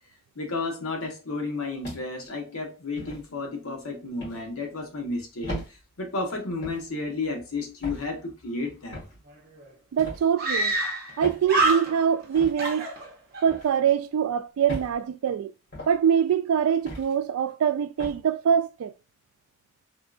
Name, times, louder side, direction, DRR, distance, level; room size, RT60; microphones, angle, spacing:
voice 1, 0.4-9.1, left 3 dB, 85° left, 1.0 m, -32 dB
sound 1, 1.8-2.3 3.0-3.2 4.2-4.4 5.4-5.7 6.6-6.9 7.8-8.1 8.9-9.2 10.0-10.2 11.2-11.5 12.3-12.6 13.5-13.7 14.7-14.9 15.7-16.0 16.9-17.1 18.0-18.2, equal, 50° left, 1.9 m, -37 dB
Screaming, 9.3-9.4 9.6-9.7 10.4-11.2 11.4-12.2 12.6-13.5, right 2 dB, 45° right, 0.7 m, -26 dB
voice 2, 9.9-10.7 11.2-12.9 13.4-15.5 15.9-18.9, right 8 dB, 90° right, 0.3 m, -24 dB
3.6 x 2.3 x 2.4 m
head